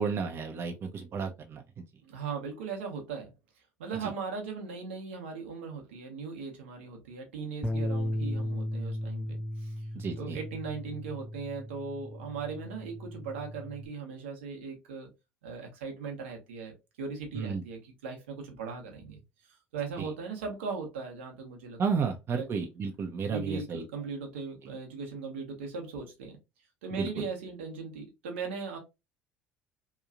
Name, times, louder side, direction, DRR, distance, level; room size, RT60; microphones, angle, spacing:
voice 1, 0.0-1.6 4.0-4.1 9.9-10.4 17.3-17.6 20.0-20.1 21.8-23.8 26.9-27.2, right 5 dB, 45° right, 0.5 m, -32 dB
voice 2, 2.0-3.3 3.8-9.9 10.2-15.1 15.4-19.2 19.5-21.8 22.4-22.5 23.3-26.4 26.8-28.8, right 5 dB, 80° right, 0.8 m, -38 dB
Bass guitar, 7.6-13.9, equal, ahead, 0.6 m, -36 dB
2.9 x 2.3 x 2.4 m
hypercardioid pair, 60°, 6 cm